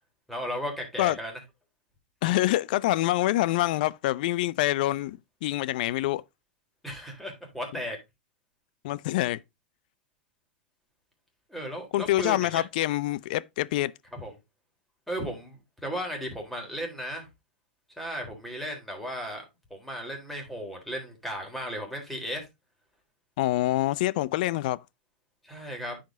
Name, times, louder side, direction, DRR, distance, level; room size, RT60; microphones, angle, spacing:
voice 1, 0.3-1.3 6.8-8.0 11.5-12.6 14.1-14.3 15.1-17.3 18.0-19.4 19.7-22.5 25.4-26.0, equal, ahead, 3.7 m, -35 dB
voice 2, 2.2-6.2 8.8-9.4 11.9-13.9 23.4-24.8, left 16 dB, 60° left, 0.5 m, -26 dB
9.2 x 5.2 x 3.7 m
hypercardioid pair, 105°, 5 cm